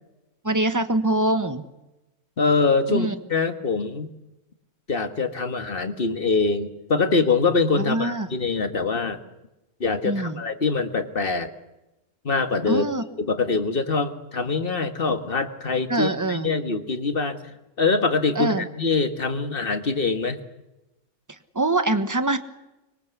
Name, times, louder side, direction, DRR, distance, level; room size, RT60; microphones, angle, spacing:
voice 1, 0.4-1.7 2.9-3.1 7.9-8.3 10.0-10.4 12.7-13.0 15.9-16.5 18.3-18.7 21.5-22.4, right 2 dB, 15° right, 10 dB, 1.2 m, -23 dB
voice 2, 2.4-4.1 4.9-9.2 9.8-11.5 12.2-12.9 13.2-20.4, left 4 dB, 40° left, 8 dB, 1.8 m, -24 dB
25.0 x 22.5 x 8.2 m, 0.98 s
omnidirectional pair, 1.6 m